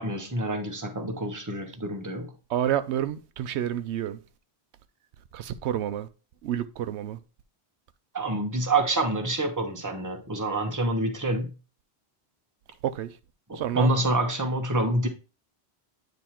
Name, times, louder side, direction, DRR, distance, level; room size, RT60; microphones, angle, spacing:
voice 1, 0.0-2.3 8.1-11.5 13.7-15.1, right 2 dB, 20° right, 1.0 m, -27 dB
voice 2, 2.5-4.2 5.3-6.1 6.4-7.2 12.8-13.1 13.6-13.9, right 11 dB, 90° right, 0.9 m, -29 dB
9.1 x 3.1 x 4.3 m
omnidirectional pair, 1.1 m